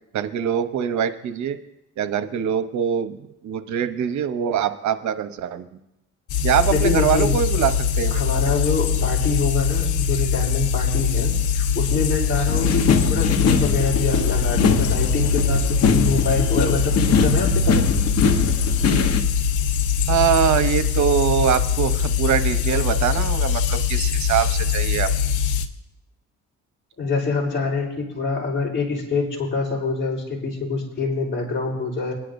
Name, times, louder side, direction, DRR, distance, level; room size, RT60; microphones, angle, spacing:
voice 1, 0.1-1.6 2.0-3.2 3.4-5.7 6.4-8.3 20.1-25.1, right 9 dB, 70° right, 10 dB, 0.9 m, -23 dB
sound 1, 6.3-25.7, left 7 dB, 80° left, 0.9 m, -22 dB
voice 2, 6.7-7.4 8.1-17.9 27.0-32.1, left 4 dB, 40° left, -2 dB, 3.8 m, -25 dB
sound 2, 12.5-19.2, left 5 dB, 55° left, 1.1 m, -22 dB
sound 3, 14.1-20.9, right 8 dB, 50° right, 1.7 m, -32 dB
22.0 x 9.9 x 2.6 m, 0.87 s
cardioid pair, 90°, 30 cm